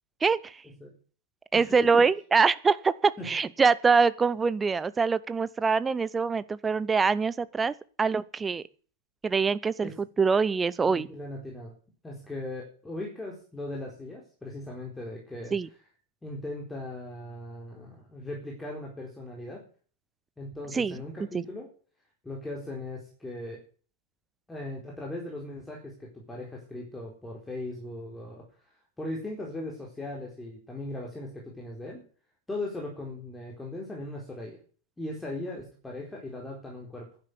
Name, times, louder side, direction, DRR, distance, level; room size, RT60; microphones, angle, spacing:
voice 1, 0.2-0.5 1.5-8.6 9.2-11.1 15.5-15.7 20.7-21.0 21.3-21.4, right 5 dB, 15° right, 17 dB, 0.8 m, -24 dB
voice 2, 1.5-2.0 3.2-3.3 9.8-10.0 10.9-11.7 12.0-15.6 16.2-19.6 20.4-21.7 22.2-23.6 24.5-28.4 29.0-32.0 32.5-34.6 35.0-37.1, left 1 dB, 10° left, -1 dB, 4.3 m, -38 dB
12.0 x 11.0 x 9.6 m, 0.42 s
figure-of-eight pair, 90°, 0 cm